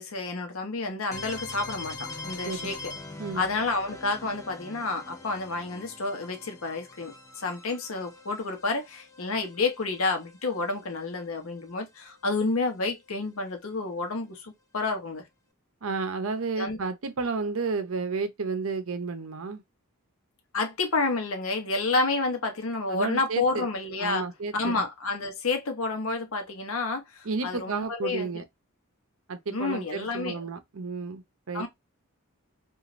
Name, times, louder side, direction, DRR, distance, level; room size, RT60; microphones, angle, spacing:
voice 1, 0.0-2.9 3.3-15.2 16.6-16.8 20.5-24.3 24.5-28.3 29.5-30.4 31.5-31.7, left 3 dB, 70° left, 0.8 m, -30 dB
sound 1, 1.1-10.8, left 3 dB, 15° left, 0.5 m, -43 dB
voice 2, 15.8-19.6 22.9-23.7 24.0-24.7 27.2-28.4 29.3-31.7, right 4 dB, 70° right, 0.6 m, -32 dB
3.0 x 2.5 x 2.5 m
head